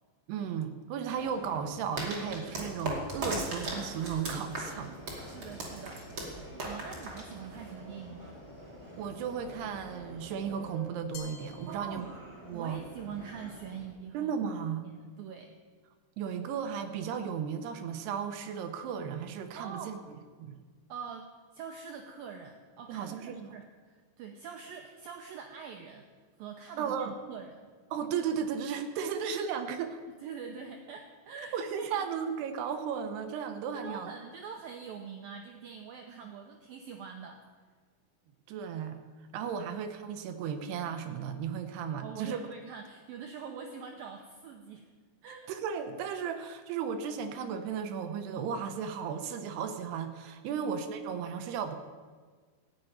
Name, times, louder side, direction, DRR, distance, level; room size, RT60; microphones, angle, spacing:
voice 1, 0.3-4.9 9.0-12.1 12.5-12.8 14.1-14.9 16.2-20.0 20.4-20.6 22.9-23.5 26.8-27.1 27.9-30.0 31.5-34.1 38.5-39.0 39.3-42.4 43.5-43.6 45.5-51.8, right 7 dB, 75° right, 7 dB, 2.7 m, -35 dB
Subway metro underground, 1.1-13.8, equal, 5° right, 4.9 m, -48 dB
sound 1, 2.0-7.7, right 2 dB, 35° right, 2.5 m, -37 dB
voice 2, 5.1-8.4 11.7-12.1 12.5-14.5 14.8-15.5 19.6-20.0 20.9-26.1 26.4-27.7 30.2-32.1 33.7-37.4 39.6-39.7 42.0-44.9 45.2-45.5 50.5-50.7, right 6 dB, 90° right, 3 dB, 2.0 m, -44 dB
Glass, 11.1-12.6, left 6 dB, 80° left, 3.9 m, -50 dB
15.0 x 7.8 x 9.2 m, 1.5 s
omnidirectional pair, 5.3 m